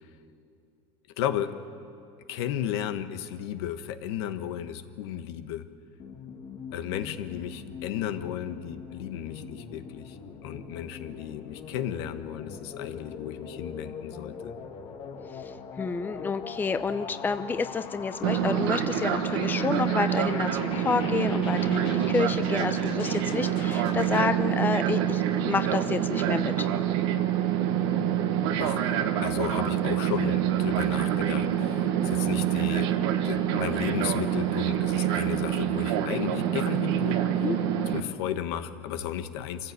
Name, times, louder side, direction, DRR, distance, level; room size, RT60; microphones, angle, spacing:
voice 1, 1.2-1.5 2.3-5.7 6.7-14.5 28.5-28.8 29.2-37.5 37.8-39.7, left 10 dB, 75° left, 9 dB, 1.3 m, -34 dB
Phat bass line, 6.0-24.3, left 6 dB, 40° left, 1.7 m, -42 dB
voice 2, 15.8-26.7 37.4-37.6, left 4 dB, 15° left, 10 dB, 0.7 m, -29 dB
Fixed-wing aircraft airplane, 18.2-38.0, right 10 dB, 75° right, 1.5 m, -26 dB
25.5 x 15.0 x 8.4 m, 2.6 s
supercardioid pair, 130°, 14 cm